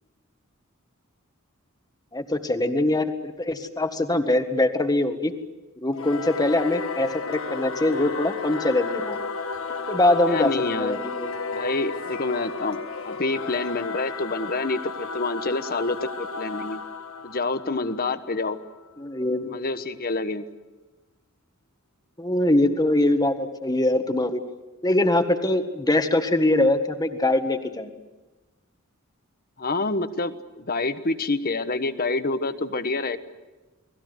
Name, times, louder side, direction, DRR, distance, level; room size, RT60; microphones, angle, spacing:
voice 1, 2.1-5.3 5.8-9.2 9.9-11.3 19.0-19.6 22.2-24.4 24.8-27.9, left 1 dB, 20° left, 7 dB, 1.7 m, -23 dB
Singing / Musical instrument, 5.9-18.8, left 4 dB, 70° left, 1.6 m, -33 dB
voice 2, 10.3-11.0 11.5-16.8 17.2-18.6 19.5-20.4 29.6-33.2, left 3 dB, 45° left, 11 dB, 1.3 m, -27 dB
30.0 x 20.0 x 8.0 m, 1.1 s
head